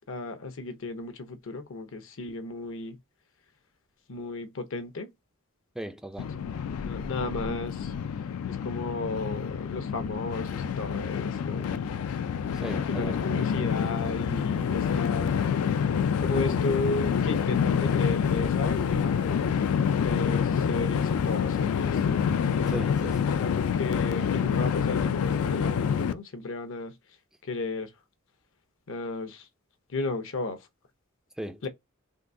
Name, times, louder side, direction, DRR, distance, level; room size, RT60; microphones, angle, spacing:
voice 1, 0.1-3.0 4.1-5.1 6.8-7.9 8.5-12.1 12.7-15.3 16.2-19.5 20.0-22.2 23.4-27.0 27.4-27.9 28.9-29.5 29.9-30.7 31.6-31.7, left 3 dB, 65° left, 0.7 m, -34 dB
voice 2, 5.7-6.3 12.5-13.2 22.7-23.3 31.4-31.7, right 1 dB, 5° right, 0.3 m, -37 dB
Train, 6.2-26.1, left 7 dB, 85° left, 0.3 m, -27 dB
3.7 x 2.7 x 2.6 m
head